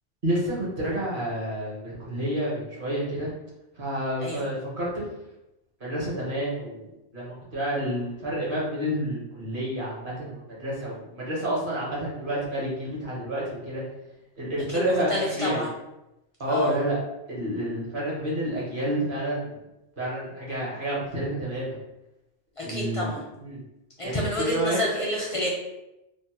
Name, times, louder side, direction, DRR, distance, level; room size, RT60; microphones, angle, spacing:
voice 1, 0.2-3.3 3.8-5.0 5.8-6.9 7.1-13.8 14.4-15.6 16.4-17.0 17.3-19.5 20.0-21.7 22.6-23.6 24.0-24.8, right 1 dB, 50° right, -5 dB, 1.1 m, -29 dB
voice 2, 14.7-15.7 16.5-16.8 22.6-23.2 24.0-25.5, left 1 dB, 45° left, -4 dB, 0.4 m, -29 dB
3.3 x 2.1 x 2.8 m, 0.91 s
omnidirectional pair, 1.2 m